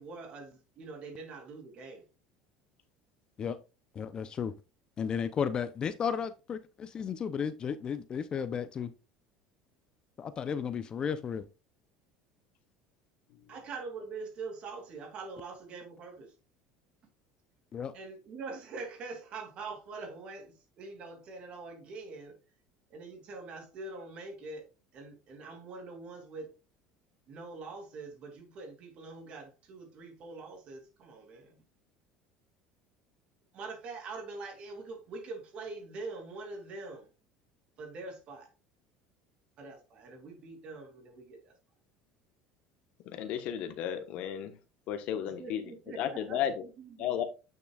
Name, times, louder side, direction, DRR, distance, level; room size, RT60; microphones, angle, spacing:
voice 1, 0.0-2.0 13.5-16.3 17.9-22.4 22.9-26.5 27.3-31.6 33.5-37.1 37.8-38.5 39.6-41.6 45.2-47.3, right 3 dB, 50° right, 2.6 m, -44 dB
voice 2, 3.9-4.5 5.0-8.9 10.2-11.4 17.7-17.9, left 7 dB, 35° left, 0.6 m, -34 dB
voice 3, 43.1-44.5 44.9-45.6 46.0-46.5 47.0-47.2, left 9 dB, 60° left, 1.2 m, -33 dB
8.7 x 6.6 x 2.4 m
supercardioid pair, 100°, 2 cm